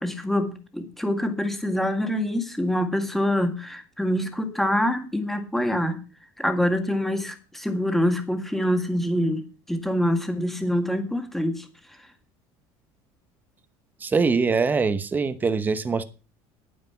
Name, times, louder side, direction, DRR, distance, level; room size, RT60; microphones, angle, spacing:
voice 1, 0.0-6.0 6.4-11.6, equal, ahead, 6 dB, 1.8 m, -25 dB
voice 2, 14.0-16.0, right 4 dB, 15° right, 11 dB, 1.0 m, -23 dB
10.5 x 9.4 x 5.7 m, 0.35 s
cardioid pair, 155°, 11 cm